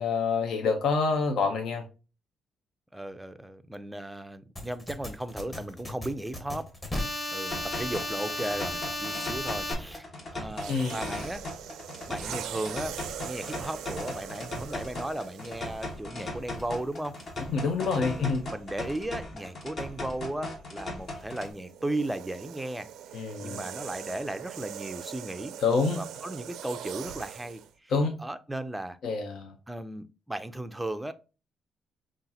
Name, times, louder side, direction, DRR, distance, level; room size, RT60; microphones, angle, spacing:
voice 1, 0.0-1.8 10.7-11.0 17.5-18.4 23.1-23.6 25.6-26.0 27.9-28.2 29.0-29.5, left 4 dB, 70° left, 0.6 m, -27 dB
voice 2, 2.9-11.5 12.1-17.2 17.9-22.9 23.4-25.6 25.9-27.9 28.2-29.0 29.7-31.1, right 1 dB, 10° right, 0.4 m, -36 dB
sound 1, 4.6-9.7, left 1 dB, 20° left, 1.3 m, -34 dB
sound 2, 7.5-21.5, left 2 dB, 45° left, 1.4 m, -38 dB
sound 3, 10.5-16.0 16.8-17.1 21.0-27.7, right 10 dB, 85° right, 0.4 m, -42 dB
5.3 x 2.5 x 2.7 m
cardioid pair, 90°, 0 cm